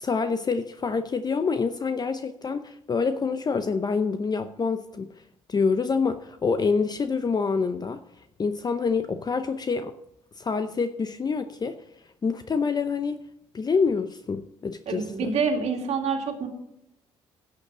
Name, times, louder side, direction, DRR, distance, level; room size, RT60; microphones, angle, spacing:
voice 1, 0.0-5.1 5.5-8.0 8.4-9.9 10.4-11.8 12.2-13.2 13.5-15.3, left 5 dB, 35° left, 9 dB, 0.7 m, -26 dB
voice 2, 14.9-16.5, right 5 dB, 60° right, 3 dB, 2.2 m, -27 dB
11.5 x 6.7 x 6.1 m, 0.80 s
supercardioid pair, 65°, 12 cm